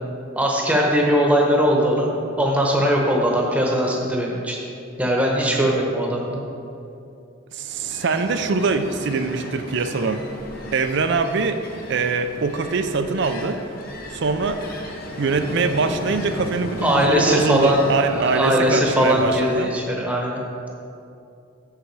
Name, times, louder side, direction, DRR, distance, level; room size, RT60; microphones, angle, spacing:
voice 1, 0.3-4.6 5.0-6.4 16.8-20.4, equal, 5° right, -1 dB, 1.0 m, -20 dB
voice 2, 7.5-10.2 10.7-11.6 11.9-13.6 14.1-14.6 15.2-19.7, right 4 dB, 55° right, 9 dB, 0.4 m, -23 dB
Ocean, 7.6-19.7, left 1 dB, 45° left, 0.9 m, -35 dB
7.5 x 6.7 x 4.7 m, 2.6 s
head